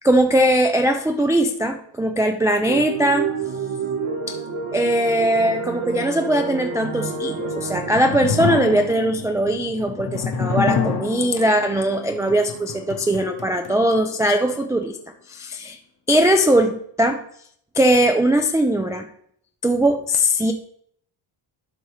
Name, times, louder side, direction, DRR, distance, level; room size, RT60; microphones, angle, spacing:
voice 1, 0.0-3.3 4.3-4.4 4.7-15.0 15.3-15.8 16.1-17.2 17.8-19.1 19.6-20.5, right 1 dB, 5° right, 4 dB, 0.3 m, -20 dB
sound 1, 2.6-8.0, right 4 dB, 80° right, 1.6 m, -28 dB
sound 2, 7.4-14.6, left 6 dB, 50° left, 1.0 m, -28 dB
11.5 x 5.2 x 3.2 m, 0.65 s
cardioid pair, 140°, 49 cm